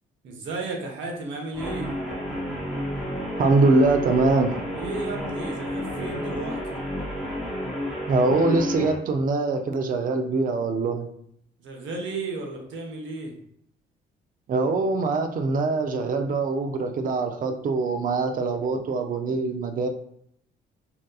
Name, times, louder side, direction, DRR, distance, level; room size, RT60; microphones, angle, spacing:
voice 1, 0.2-1.9 4.7-6.8 11.6-13.3, right 3 dB, 75° right, 1 dB, 0.7 m, -34 dB
Guitar, 1.5-9.0, equal, ahead, 0.9 m, -31 dB
voice 2, 3.4-4.6 8.1-11.1 14.5-19.9, right 3 dB, 45° right, 6 dB, 0.4 m, -23 dB
2.7 x 2.2 x 2.3 m, 0.70 s
cardioid pair, 90°, 20 cm